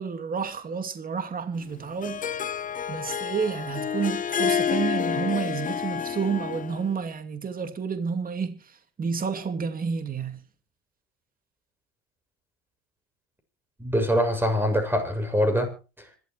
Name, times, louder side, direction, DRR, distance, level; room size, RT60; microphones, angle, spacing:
voice 1, 0.0-2.4 2.9-10.4, right 6 dB, 30° right, 2.6 m, -30 dB
Harp, 1.6-6.9, left 7 dB, 25° left, 1.0 m, -29 dB
voice 2, 13.8-16.2, equal, 5° right, 6.8 m, -24 dB
26.0 x 13.0 x 3.1 m
hypercardioid pair, 85°, 31 cm